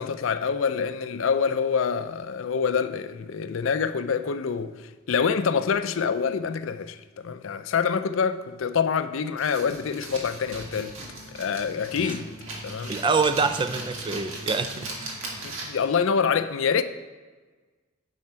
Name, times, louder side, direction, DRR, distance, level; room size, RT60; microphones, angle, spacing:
voice 1, 0.0-10.9 11.3-12.3 12.6-12.9 15.4-16.8, left 6 dB, 75° left, 0.4 m, -26 dB
sound 1, 9.4-15.9, right 2 dB, 85° right, 1.7 m, -38 dB
sound 2, 9.8-15.5, equal, 60° right, 2.0 m, -46 dB
voice 2, 12.9-15.2, right 4 dB, 25° right, 0.3 m, -26 dB
9.4 x 5.7 x 4.3 m
head